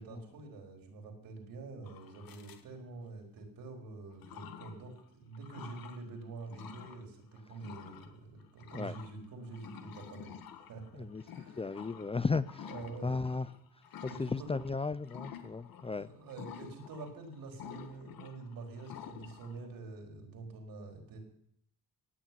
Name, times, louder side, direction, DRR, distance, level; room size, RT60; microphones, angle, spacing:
voice 1, 0.0-10.3 10.7-11.6 12.7-13.3 14.1-14.5 15.9-21.2, right 3 dB, 75° right, 4.3 m, -46 dB
sound 1, 1.9-2.6 3.4-3.5 4.1-5.0 5.3-6.0 6.4-7.0 7.3-14.7 15.0-15.9 16.3-19.6, left 8 dB, 75° left, 1.8 m, -50 dB
voice 2, 11.6-12.7 13.0-13.5 14.0-16.1, left 4 dB, 15° left, 0.5 m, -35 dB
17.0 x 7.2 x 9.3 m
cardioid pair, 105°, 35 cm